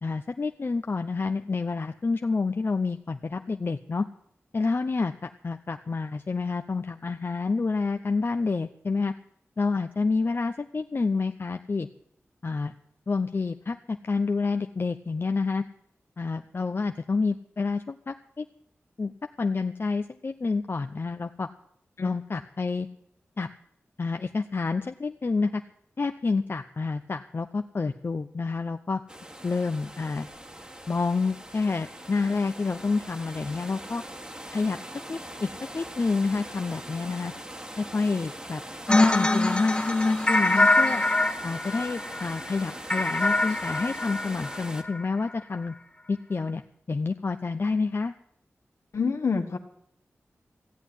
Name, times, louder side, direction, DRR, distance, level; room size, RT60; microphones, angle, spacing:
voice 1, 0.0-4.1 4.5-9.1 9.6-11.9 12.4-12.7 13.1-15.6 16.2-18.4 19.0-19.1 19.4-21.5 22.0-22.9 23.4-23.5 24.0-25.6 26.0-29.0 29.4-30.3 30.9-34.0 34.5-34.8 35.1-37.3 37.8-38.6 38.9-41.0 41.4-45.7 46.1-46.6 46.9-48.1, left 4 dB, 50° left, 7 dB, 0.7 m, -28 dB
sound 1, 29.1-44.8, right 1 dB, 20° right, 1.6 m, -41 dB
sound 2, 38.9-45.0, left 2 dB, 20° left, 1.3 m, -25 dB
voice 2, 48.9-49.6, left 5 dB, 75° left, 5 dB, 1.8 m, -27 dB
14.5 x 8.3 x 9.9 m, 0.69 s
cardioid pair, 55°, 5 cm